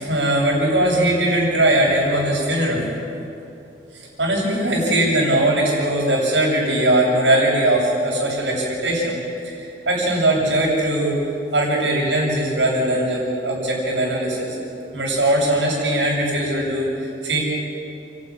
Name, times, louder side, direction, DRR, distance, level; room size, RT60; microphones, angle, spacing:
voice 1, 0.0-2.9 4.2-9.2 9.4-11.2 11.5-14.6 14.9-17.4, right 1 dB, 80° right, -3 dB, 7.3 m, -20 dB
29.5 x 12.0 x 9.7 m, 2.7 s
head